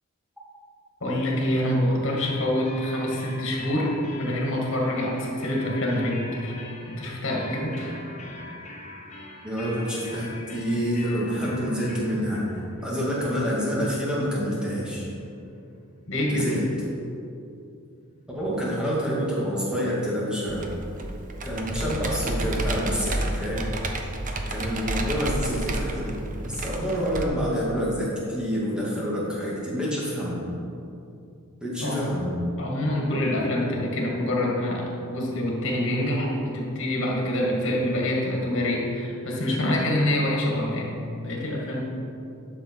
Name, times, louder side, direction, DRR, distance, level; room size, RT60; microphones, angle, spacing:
voice 1, 1.0-6.5 6.9-8.0 16.1-16.5 31.8-32.0 32.6-41.8, left 1 dB, 60° left, -2 dB, 2.2 m, -26 dB
sound 1, 2.2-15.8, left 2 dB, 35° left, 1.0 m, -43 dB
voice 2, 9.4-12.5 12.8-15.0 16.3-16.6 18.3-20.7 21.4-23.7 24.5-30.4 31.6-32.3, equal, 5° right, -7 dB, 2.3 m, -27 dB
Computer keyboard, 20.5-27.2, right 1 dB, 40° right, 0.8 m, -30 dB
11.0 x 6.5 x 4.7 m, 2.6 s
head